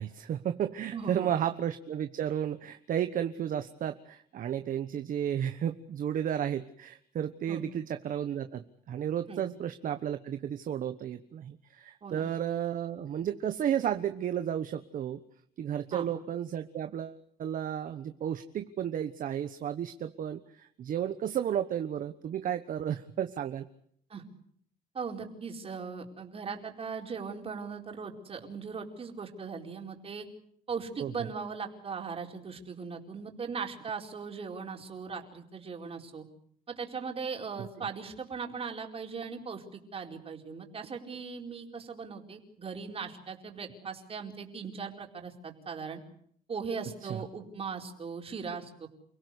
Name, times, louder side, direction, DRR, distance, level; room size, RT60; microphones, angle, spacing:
voice 1, 0.0-15.2 15.6-23.6 31.0-31.3 47.1-47.2, right 9 dB, 55° right, 8 dB, 1.2 m, -33 dB
voice 2, 0.9-1.3 7.5-7.7 9.3-9.4 12.0-12.2 15.9-16.1 24.1-24.2 24.9-30.3 30.7-36.3 36.7-46.0 46.5-48.9, right 5 dB, 35° right, 2 dB, 4.5 m, -39 dB
29.5 x 17.0 x 8.3 m, 0.68 s
cardioid pair, 110°, 17 cm